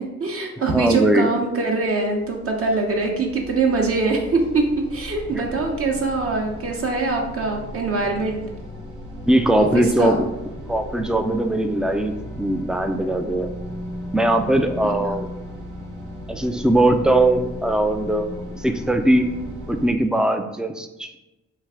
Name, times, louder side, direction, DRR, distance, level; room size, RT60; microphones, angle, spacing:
voice 1, 0.0-4.6 4.9-8.4 9.6-10.2 14.8-15.1, right 3 dB, 50° right, 1 dB, 0.7 m, -23 dB
voice 2, 0.6-1.3 9.3-10.3 10.7-13.5 14.1-15.3 16.3-19.3 19.7-21.2, right 1 dB, 5° right, 6 dB, 0.3 m, -20 dB
sound 1, 1.5-19.9, equal, 75° right, 1.0 m, -36 dB
3.2 x 2.4 x 3.5 m, 0.97 s
cardioid pair, 65°, 31 cm